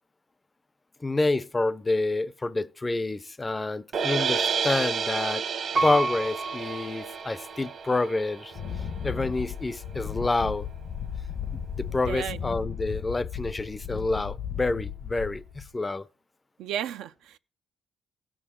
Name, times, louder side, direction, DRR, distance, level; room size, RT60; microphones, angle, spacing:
voice 1, 1.0-5.4 5.8-8.5 9.0-10.7 11.5-16.1, left 2 dB, 20° left, 0.4 m, -28 dB
sound 1, 3.9-10.1, right 6 dB, 65° right, 1.2 m, -31 dB
Piano, 5.7-7.7 8.3-8.4, right 3 dB, 35° right, 0.6 m, -31 dB
Wind, 8.5-15.7, left 8 dB, 75° left, 1.0 m, -35 dB
voice 2, 11.9-12.4 16.6-17.4, right 10 dB, 90° right, 0.4 m, -34 dB
16.5 x 6.2 x 3.6 m
cardioid pair, 90°, 0 cm